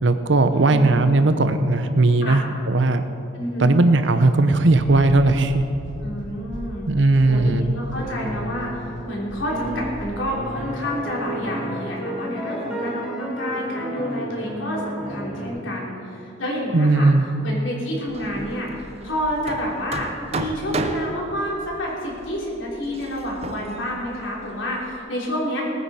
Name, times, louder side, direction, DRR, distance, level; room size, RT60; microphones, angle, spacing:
voice 1, 0.0-3.0 3.6-5.6 6.9-7.7 16.7-17.2, right 2 dB, 70° right, 9 dB, 0.8 m, -17 dB
voice 2, 0.5-1.2 2.2-2.4 3.3-3.7 6.0-6.9 7.3-17.1 17.4-20.1 20.3-25.6, equal, 85° left, -3 dB, 3.3 m, -29 dB
sound 1, 4.8-10.0, equal, 65° left, 2.8 m, -38 dB
sound 2, 8.0-9.1 9.5-15.5, equal, 5° right, 1.9 m, -32 dB
Hammer, 18.1-25.0, right 2 dB, 30° right, 0.6 m, -34 dB
19.0 x 9.6 x 4.3 m, 2.7 s
head